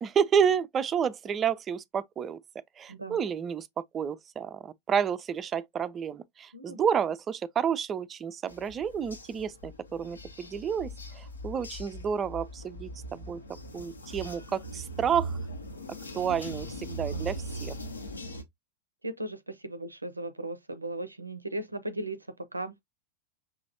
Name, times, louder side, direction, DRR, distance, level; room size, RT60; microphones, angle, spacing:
voice 1, 0.0-2.4 2.8-3.7 3.9-13.4 13.7-15.4 16.1-17.7, right 7 dB, 25° right, 0.4 m, -30 dB
sound 1, 8.5-18.4, right 1 dB, 75° left, 0.8 m, -40 dB
voice 2, 19.0-22.2 22.5-22.7, right 1 dB, 80° right, 0.5 m, -37 dB
6.0 x 3.0 x 2.7 m
figure-of-eight pair, 90°, 0 cm